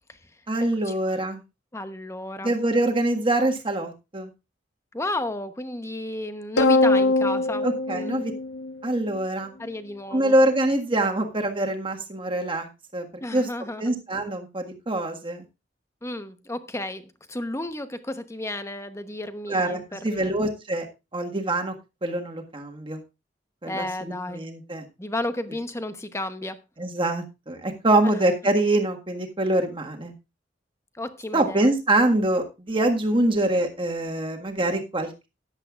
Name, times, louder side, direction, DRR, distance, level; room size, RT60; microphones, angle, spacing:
voice 1, 0.5-1.4 2.4-4.3 7.6-8.3 8.8-9.5 10.1-13.1 13.3-13.5 13.8-15.4 19.5-20.9 21.1-21.7 22.0-23.0 23.6-24.8 26.8-30.1 31.3-35.3, right 1 dB, 30° right, 1.7 m, -24 dB
voice 2, 1.7-2.5 4.9-8.2 9.6-10.4 13.2-13.9 16.0-20.3 23.7-24.4 25.0-26.6 28.0-28.3 31.0-31.7, left 1 dB, 15° left, 0.9 m, -33 dB
sound 1, 6.6-9.2, left 2 dB, 70° left, 0.8 m, -22 dB
14.0 x 10.5 x 2.4 m
head